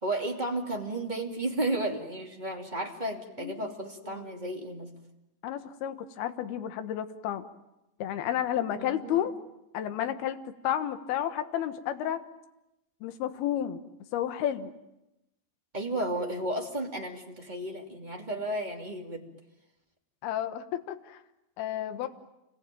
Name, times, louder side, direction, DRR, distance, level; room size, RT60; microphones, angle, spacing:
voice 1, 0.0-4.9 8.8-9.3 15.7-19.3 22.0-22.1, right 1 dB, 15° right, 1 dB, 1.7 m, -33 dB
voice 2, 5.4-7.4 8.0-9.3 9.7-10.4 10.6-12.2 13.0-13.8 14.1-14.7 20.2-21.2 21.6-22.1, left 11 dB, 65° left, 9 dB, 3.1 m, -31 dB
29.0 x 22.5 x 9.2 m, 0.94 s
omnidirectional pair, 5.2 m